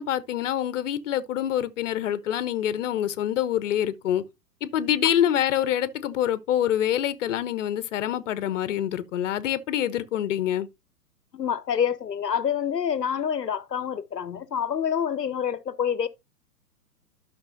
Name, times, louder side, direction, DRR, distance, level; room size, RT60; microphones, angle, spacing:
voice 1, 0.0-4.2 4.6-10.7, left 11 dB, 50° left, 1.0 m, -26 dB
voice 2, 11.3-16.1, left 8 dB, 80° left, 1.0 m, -27 dB
12.0 x 6.1 x 2.7 m
figure-of-eight pair, 115°, 48 cm